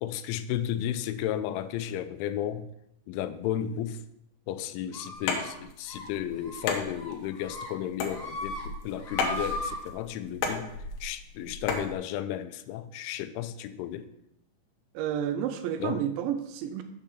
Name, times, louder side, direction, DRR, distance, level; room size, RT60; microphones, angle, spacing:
voice 1, 0.0-2.7 3.1-4.0 4.5-10.7 11.0-14.1 15.8-16.0, left 11 dB, 85° left, 10 dB, 3.0 m, -33 dB
sound 1, 4.9-5.5 5.8-6.0 6.4-6.6 7.0-7.7 8.0-8.6 8.9-9.7, left 1 dB, 15° left, 3.1 m, -37 dB
sound 2, 5.1-11.9, left 4 dB, 70° left, 3.0 m, -34 dB
voice 2, 14.9-16.8, right 9 dB, 85° right, 7 dB, 2.9 m, -30 dB
7.3 x 5.6 x 6.7 m, 0.80 s
omnidirectional pair, 5.4 m